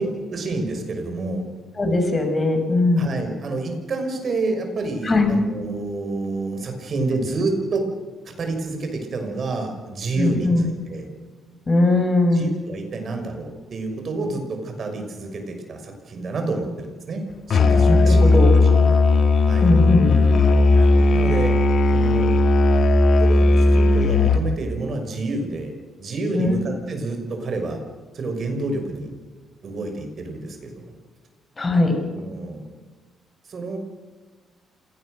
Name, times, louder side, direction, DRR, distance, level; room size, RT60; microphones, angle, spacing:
voice 1, 0.0-1.5 3.0-7.9 8.2-11.1 12.3-18.3 18.6-19.0 19.5-19.7 20.7-21.6 21.9-22.3 23.2-25.7 26.0-27.8 28.1-29.1 29.6-30.8 32.2-32.6 33.5-33.8, right 2 dB, 50° right, 5 dB, 6.1 m, -28 dB
voice 2, 1.8-3.0 5.0-5.3 10.2-10.7 11.7-12.4 17.9-18.5 19.6-20.2 26.3-26.5 31.6-32.0, left 2 dB, 25° left, 5 dB, 6.3 m, -19 dB
Musical instrument, 17.5-24.5, left 2 dB, 55° left, 2.2 m, -16 dB
27.5 x 18.5 x 6.6 m, 1.4 s
cardioid pair, 90°, 0 cm